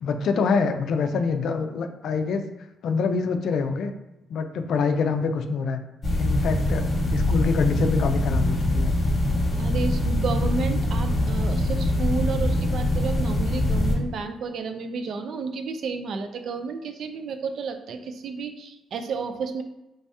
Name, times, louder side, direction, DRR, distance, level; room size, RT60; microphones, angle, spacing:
voice 1, 0.0-2.5 2.8-3.9 4.3-5.8 6.2-6.8 7.1-8.9, left 5 dB, 70° left, 7 dB, 0.4 m, -25 dB
sound 1, 6.0-14.0, left 1 dB, 35° left, 1.2 m, -23 dB
voice 2, 9.6-19.6, right 5 dB, 65° right, 7 dB, 0.4 m, -31 dB
3.2 x 2.7 x 3.4 m, 0.98 s
cardioid pair, 90°, 0 cm